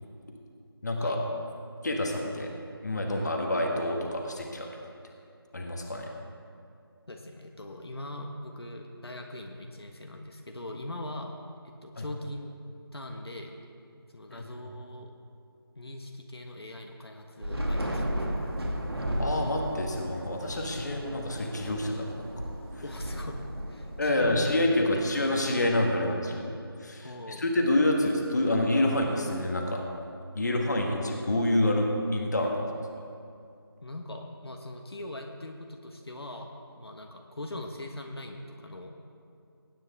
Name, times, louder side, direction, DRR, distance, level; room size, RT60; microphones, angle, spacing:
voice 1, 0.8-1.2 1.8-2.5 2.8-4.7 5.5-6.1 12.0-12.1 14.3-14.5 19.2-22.2 24.0-29.9 30.3-32.6, left 1 dB, 45° left, 1 dB, 1.5 m, -27 dB
voice 2, 7.1-11.4 11.6-12.5 12.9-13.6 14.1-15.1 15.8-18.4 22.8-23.4 23.7-25.5 27.0-27.4 33.8-38.9, left 1 dB, 75° left, 2 dB, 1.3 m, -40 dB
Thunder / Rain, 17.4-24.9, equal, 75° right, 2.3 m, -34 dB
20.0 x 9.4 x 3.5 m, 2.5 s
figure-of-eight pair, 170°, 13 cm